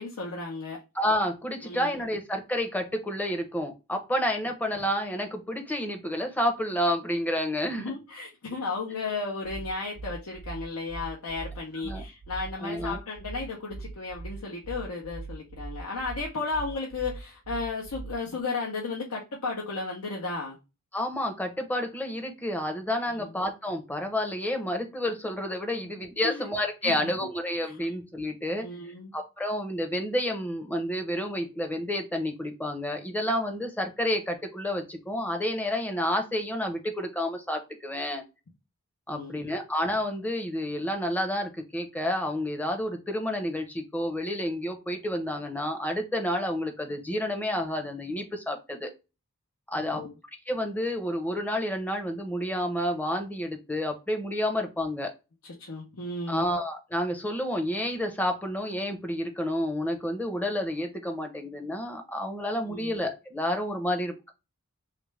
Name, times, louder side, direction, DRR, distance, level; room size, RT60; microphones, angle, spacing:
voice 1, 0.0-0.8 1.6-1.9 7.8-20.6 23.2-23.3 26.2-26.4 26.8-27.1 27.6-27.9 28.6-29.1 39.1-39.5 49.8-50.1 55.4-56.5 62.6-62.9, left 3 dB, 90° left, 0.8 m, -34 dB
voice 2, 0.9-7.9 11.8-12.0 12.6-13.0 20.9-28.7 29.1-38.2 39.1-48.9 49.7-50.0 50.5-55.1 56.3-64.3, left 1 dB, 5° left, 0.6 m, -30 dB
sound 1, 9.4-18.4, right 3 dB, 60° right, 0.4 m, -40 dB
3.2 x 2.5 x 3.1 m
head